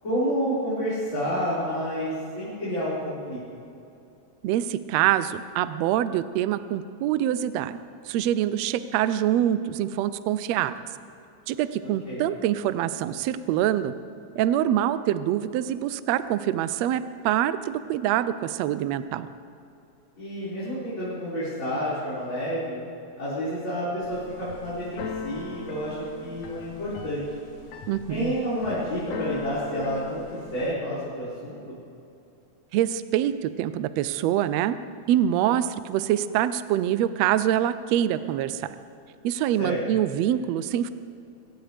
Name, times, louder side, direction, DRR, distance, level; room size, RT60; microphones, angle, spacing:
voice 1, 0.0-3.4 12.1-12.2 20.2-22.8 23.2-27.2 28.1-31.8 39.6-39.8, equal, 40° left, -12 dB, 5.9 m, -29 dB
voice 2, 4.4-7.8 8.0-10.7 11.5-13.9 14.4-19.3 27.9-28.3 32.7-34.8 35.1-38.7 39.2-40.9, right 11 dB, 75° right, 13 dB, 1.7 m, -25 dB
Keyboard (musical), 24.0-30.7, left 4 dB, 70° left, 2.4 m, -39 dB
23.0 x 17.5 x 3.4 m, 2.6 s
omnidirectional pair, 3.3 m